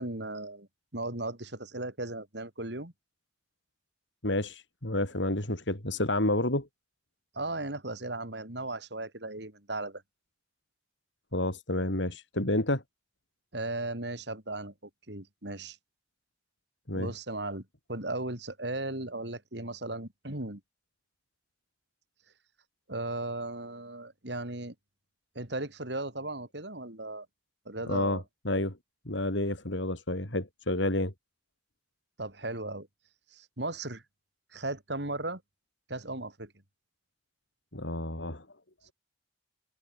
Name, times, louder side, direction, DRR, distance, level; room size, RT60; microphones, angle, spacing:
voice 1, 0.0-2.9 7.3-10.0 13.5-14.7 15.1-15.8 16.9-20.6 22.9-24.7 25.3-27.3 27.7-28.2 32.2-32.9 33.3-34.0 34.5-35.4 35.9-36.5, right 2 dB, 70° right, 4.2 m, -36 dB
voice 2, 4.2-6.7 11.3-12.8 16.9-17.1 27.9-28.8 29.1-31.1 37.7-38.5, left 1 dB, 85° left, 5.4 m, -30 dB
head